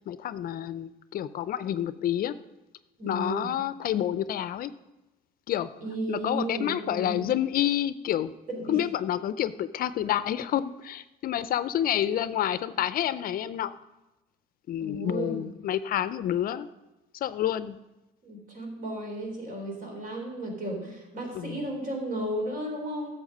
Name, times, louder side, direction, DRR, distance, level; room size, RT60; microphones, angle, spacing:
voice 1, 0.1-2.3 3.1-4.7 5.5-5.7 6.1-8.3 8.7-13.7 14.7-16.7 17.2-17.8 21.3-21.7, left 11 dB, 55° left, 14 dB, 0.5 m, -29 dB
voice 2, 3.0-3.5 5.8-7.2 8.5-8.8 14.8-15.4 18.2-23.1, right 1 dB, 50° right, 1 dB, 4.0 m, -34 dB
11.0 x 7.3 x 5.3 m, 1.0 s
cardioid pair, 95°, 18 cm